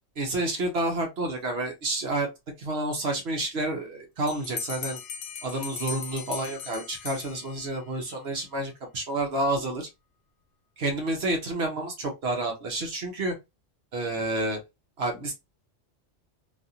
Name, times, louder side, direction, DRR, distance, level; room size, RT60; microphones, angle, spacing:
voice 1, 0.2-2.3 2.6-5.0 5.4-9.9 10.8-13.3 13.9-14.6 15.0-15.3, right 2 dB, 65° right, 1.1 m, -29 dB
Bell, 4.3-7.9, left 6 dB, 90° left, 0.9 m, -38 dB
3.2 x 2.4 x 2.6 m
omnidirectional pair, 1.2 m